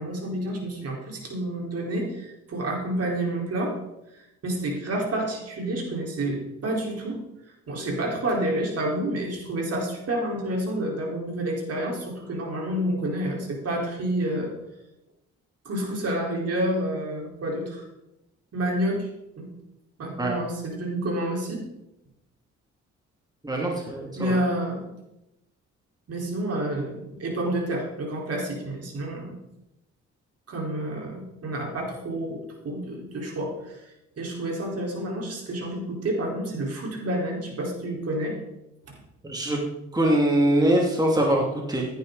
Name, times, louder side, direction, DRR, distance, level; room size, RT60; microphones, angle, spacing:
voice 1, 0.0-3.7 4.1-7.2 7.7-14.5 15.6-17.8 18.5-19.1 19.4-19.5 20.0-21.6 24.1-24.9 26.1-29.4 30.5-33.8 34.2-38.4, right 1 dB, 55° right, -1 dB, 4.3 m, -29 dB
voice 2, 23.4-24.4 39.2-39.6 39.9-42.0, right 1 dB, 15° right, -1 dB, 2.5 m, -23 dB
15.5 x 10.5 x 4.0 m, 0.90 s
cardioid pair, 90°, 30 cm